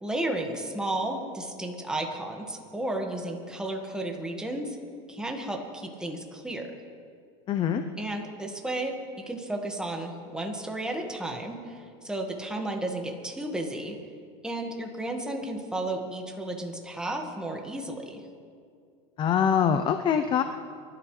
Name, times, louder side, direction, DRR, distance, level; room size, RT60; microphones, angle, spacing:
voice 1, 0.0-4.8 5.1-6.7 8.0-9.0 9.3-13.9 14.4-18.2, right 1 dB, 5° right, 2 dB, 1.8 m, -33 dB
voice 2, 7.5-7.8 19.2-20.4, left 8 dB, 30° left, 9 dB, 0.6 m, -24 dB
23.5 x 12.5 x 3.3 m, 2.3 s
supercardioid pair, 130°, 16 cm